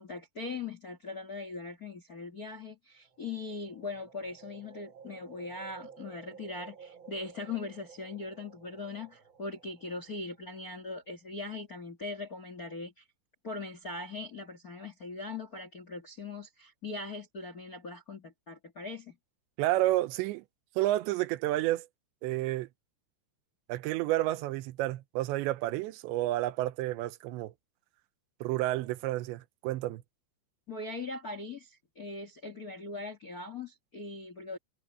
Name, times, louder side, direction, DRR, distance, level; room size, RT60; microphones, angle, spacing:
voice 1, 0.0-13.0 13.4-19.2 30.7-34.6, left 3 dB, 50° left, 1.0 m, -40 dB
sound 1, 3.0-11.1, right 6 dB, 65° right, 1.1 m, -54 dB
voice 2, 19.6-20.4 20.8-21.9 22.2-22.7 23.7-27.5 28.4-30.0, right 16 dB, 85° right, 3.1 m, -30 dB
omnidirectional pair, 5.0 m